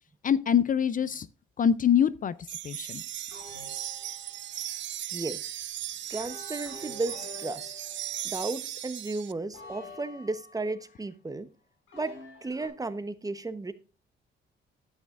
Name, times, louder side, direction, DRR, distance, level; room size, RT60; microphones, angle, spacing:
voice 1, 0.2-1.3 1.6-3.0, left 8 dB, 40° left, 0.5 m, -25 dB
sound 1, 2.5-9.3, right 12 dB, 70° right, 0.6 m, -37 dB
sound 2, 3.3-4.7 6.1-8.5 9.5-11.0 11.9-12.7, left 2 dB, 90° left, 4.7 m, -48 dB
voice 2, 6.1-7.7 8.2-11.5 11.9-12.1 12.4-13.7, right 3 dB, 20° right, 0.9 m, -34 dB
11.5 x 8.8 x 2.5 m
cardioid pair, 90°, 20 cm